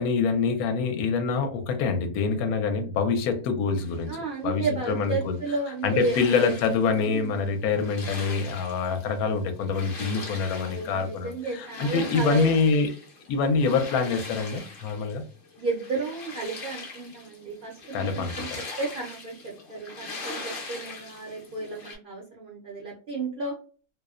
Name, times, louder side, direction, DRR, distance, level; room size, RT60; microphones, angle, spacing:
voice 1, 0.0-5.4 5.8-12.9 13.3-15.2 17.9-18.6, left 5 dB, 75° left, 1.0 m, -26 dB
sound 1, 3.8-22.0, left 3 dB, 55° left, 0.6 m, -42 dB
voice 2, 4.1-6.5 7.0-7.3 10.6-12.8 15.6-23.5, right 3 dB, 65° right, 0.5 m, -32 dB
2.7 x 2.0 x 2.3 m
omnidirectional pair, 1.6 m